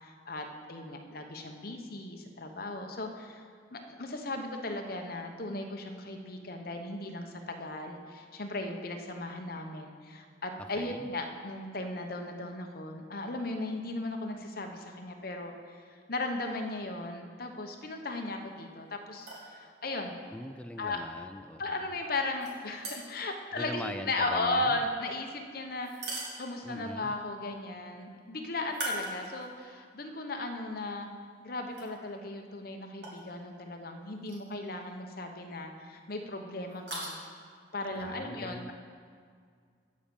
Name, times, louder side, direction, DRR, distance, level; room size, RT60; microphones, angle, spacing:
voice 1, 0.0-3.4 3.7-15.8 16.1-20.2 20.8-21.1 21.6-31.1 31.4-37.1 37.7-38.7, left 2 dB, 50° left, 4 dB, 1.0 m, -36 dB
voice 2, 10.8-11.1 20.3-21.9 23.5-24.8 26.6-27.2 37.9-38.7, left 1 dB, 5° left, 8 dB, 0.3 m, -42 dB
sound 1, 19.2-19.5 22.4-23.3 25.8-26.8 28.7-29.6 30.1-30.2 31.7-31.9 33.0-33.2 34.2-34.5 34.8-34.9 36.7-37.1, right 1 dB, 60° right, 2.3 m, -39 dB
12.0 x 5.2 x 7.1 m, 2.1 s
head